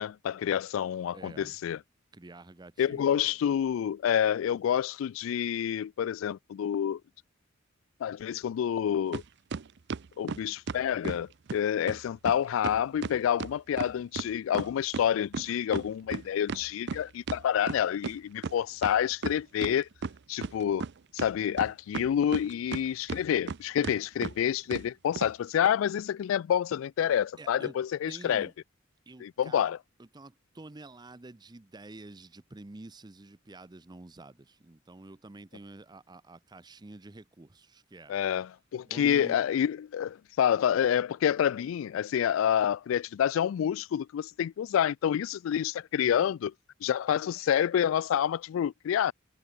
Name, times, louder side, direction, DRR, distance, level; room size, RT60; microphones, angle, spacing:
voice 1, 0.0-1.8 2.8-7.0 8.0-9.2 10.2-19.9 20.3-20.9 21.1-28.5 29.2-29.8 38.1-46.5 46.8-49.1, left 9 dB, 85° left, 0.3 m, -28 dB
voice 2, 1.1-1.6 2.1-3.2 27.4-27.8 28.1-28.5 29.1-29.7 30.0-38.1 38.8-39.4, right 2 dB, 20° right, 0.6 m, -48 dB
sound 1, 9.1-9.2 9.5-11.2 11.5-11.6 11.9-12.0 12.2-12.4 12.6-15.1 15.3-18.1 18.4-18.5 18.8-19.7 20.0-20.9 21.2-22.8 23.1-23.6 23.8-24.0 24.2-24.3 24.7-24.8 25.2-25.3, right 5 dB, 60° right, 0.5 m, -35 dB
head